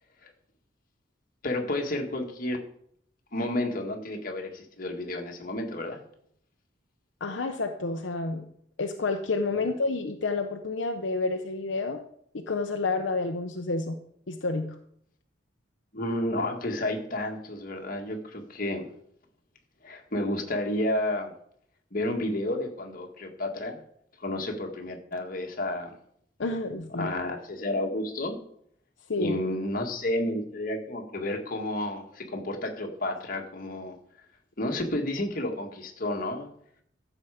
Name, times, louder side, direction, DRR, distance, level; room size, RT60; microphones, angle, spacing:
voice 1, 1.4-2.6 3.3-6.0 15.9-18.9 19.8-21.3 21.9-23.8 24.2-26.0 27.0-28.4 29.2-33.9 34.6-36.5, left 1 dB, 50° left, 2 dB, 1.9 m, -31 dB
voice 2, 7.2-8.5 8.8-12.0 12.3-14.0 14.3-14.7 26.4-27.1 29.1-29.4, left 3 dB, 75° left, 4 dB, 0.8 m, -29 dB
14.0 x 7.2 x 5.0 m, 0.68 s
head